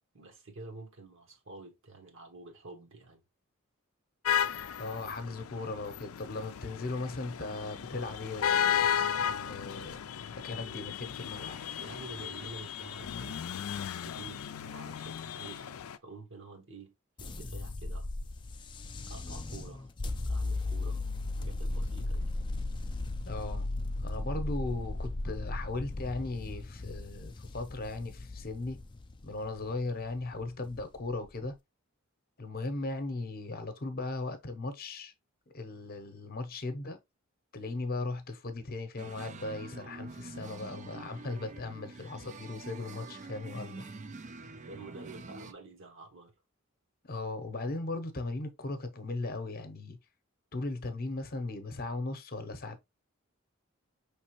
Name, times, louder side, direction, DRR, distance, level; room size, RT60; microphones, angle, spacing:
voice 1, 0.1-3.2 11.8-15.7 16.0-16.9 17.2-18.1 19.1-19.9 20.2-21.0 21.4-22.3 44.7-46.3, right 3 dB, 60° right, 1.2 m, -49 dB
sound 1, 4.3-16.0, left 8 dB, 90° left, 0.4 m, -34 dB
voice 2, 4.8-10.0 10.3-11.6 23.2-23.7 24.0-28.8 29.2-31.6 32.4-35.1 35.5-37.0 37.5-43.9 47.0-50.0 50.5-52.8, left 2 dB, 45° left, 0.8 m, -37 dB
sound 2, 17.2-31.4, left 2 dB, 20° left, 0.4 m, -36 dB
sound 3, 39.0-45.5, right 3 dB, 35° right, 0.4 m, -46 dB
5.4 x 3.3 x 3.0 m
head